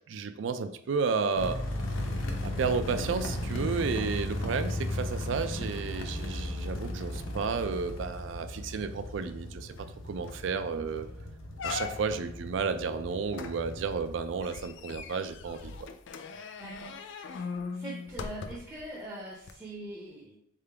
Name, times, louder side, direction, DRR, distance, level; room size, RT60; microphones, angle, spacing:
voice 1, 0.1-1.6 2.4-11.1 11.6-15.7, right 5 dB, 65° right, 10 dB, 0.4 m, -32 dB
sound 1, 1.3-14.6, left 1 dB, 85° left, 0.8 m, -36 dB
sound 2, 9.8-9.9 10.3-10.6 11.0-11.1 11.6-12.3 13.3-18.8 19.4-19.5, left 5 dB, 65° left, 0.4 m, -40 dB
voice 2, 10.7-11.1 16.6-17.5 17.7-20.4, right 1 dB, 15° right, -4 dB, 0.6 m, -43 dB
3.7 x 3.6 x 3.3 m, 0.74 s
head